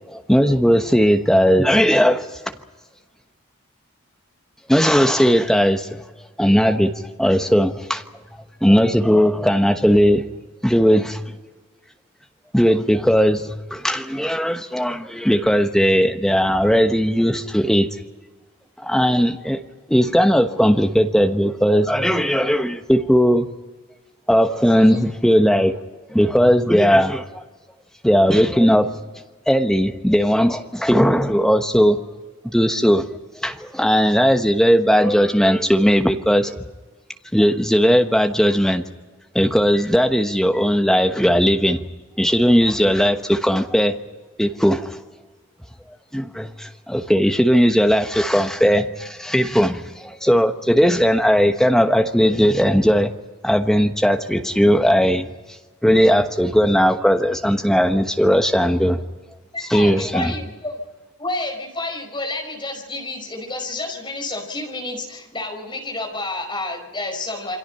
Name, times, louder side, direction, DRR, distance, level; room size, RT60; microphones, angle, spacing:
voice 1, 0.1-2.3 4.7-6.0 6.4-6.9 7.2-8.0 8.6-10.2 10.6-11.2 12.5-17.9 18.8-19.6 19.9-23.5 24.3-25.8 26.1-27.4 28.0-29.0 29.5-32.0 32.4-33.0 33.4-36.6 37.3-38.8 39.3-41.8 42.2-44.0 44.4-45.0 46.1-53.1 53.4-55.3 55.8-59.0 59.7-60.3, equal, ahead, 5 dB, 1.1 m, -17 dB
voice 2, 59.5-60.8 61.2-67.6, left 2 dB, 20° left, 1 dB, 5.2 m, -30 dB
28.5 x 23.0 x 5.6 m, 1.3 s
head